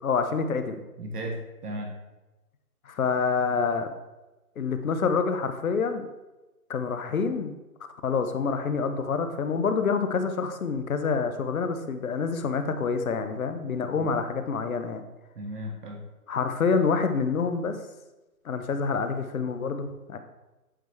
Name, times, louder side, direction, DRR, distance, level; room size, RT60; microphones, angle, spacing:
voice 1, 0.0-0.8 2.9-3.9 4.6-6.1 6.7-7.6 8.0-15.0 16.3-17.8 18.4-20.2, left 5 dB, 60° left, 8 dB, 0.8 m, -27 dB
voice 2, 1.0-1.9 13.9-14.1 15.3-16.0, equal, 80° right, 0 dB, 1.5 m, -35 dB
8.0 x 4.5 x 3.1 m, 1.1 s
hypercardioid pair, 155°, 46 cm